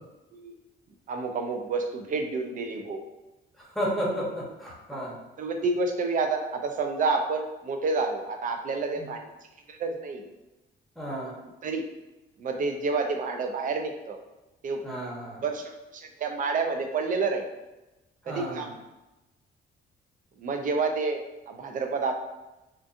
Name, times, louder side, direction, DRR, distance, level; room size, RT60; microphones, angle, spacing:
voice 1, 1.1-3.0 4.9-5.0 5.4-9.2 9.7-10.3 11.6-11.8 12.4-14.2 14.6-14.8 15.4-17.4 18.3-18.7 20.4-22.1, right 4 dB, 45° right, 5 dB, 0.4 m, -29 dB
voice 2, 3.6-5.2 9.0-9.1 11.0-11.4 14.8-15.4 18.2-18.7, equal, ahead, -6 dB, 0.9 m, -32 dB
2.5 x 2.4 x 2.4 m, 1.0 s
cardioid pair, 90°, 20 cm